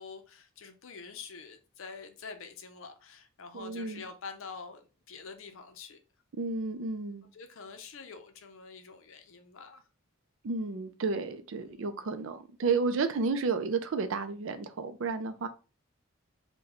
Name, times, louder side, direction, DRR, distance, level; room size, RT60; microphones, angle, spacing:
voice 1, 0.0-6.0 7.3-9.8 11.6-11.9, left 5 dB, 65° left, 0.5 m, -46 dB
voice 2, 3.5-4.0 6.4-7.3 10.4-15.5, right 4 dB, 60° right, 0.4 m, -32 dB
3.0 x 2.2 x 3.6 m
head